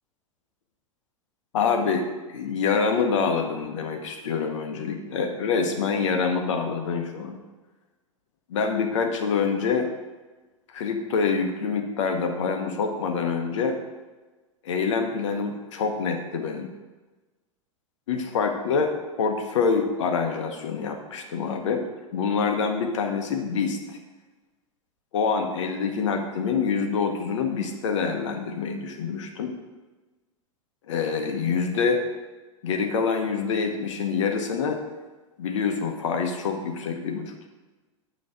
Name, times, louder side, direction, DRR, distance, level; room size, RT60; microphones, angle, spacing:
voice 1, 1.5-7.4 8.5-9.9 10.7-13.8 14.6-16.7 18.1-18.9 19.2-21.8 22.1-24.0 25.1-29.5 30.9-32.0 32.6-34.8 35.4-37.5, left 5 dB, 65° left, 4 dB, 1.1 m, -26 dB
8.4 x 3.2 x 6.3 m, 1.2 s
hypercardioid pair, 95°, 17 cm